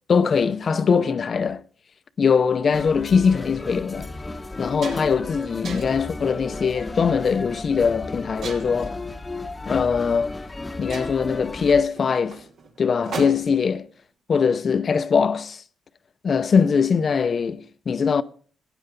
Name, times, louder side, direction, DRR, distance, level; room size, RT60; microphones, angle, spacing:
voice 1, 0.1-1.6 2.2-4.1 4.6-9.0 9.7-10.3 10.8-12.4 12.8-13.9 14.3-15.6 16.2-18.2, left 6 dB, 45° left, 0.7 m, -21 dB
sound 1, 2.7-11.8, left 2 dB, 15° left, 1.0 m, -34 dB
sound 2, 3.4-3.5 4.1-4.2 4.5-5.3 5.6-6.1 6.8-7.1 8.4-9.0 10.1-10.2 10.5-10.6 10.9-13.7, right 4 dB, 65° right, 2.8 m, -37 dB
14.0 x 9.3 x 5.2 m
cardioid pair, 90°, 0 cm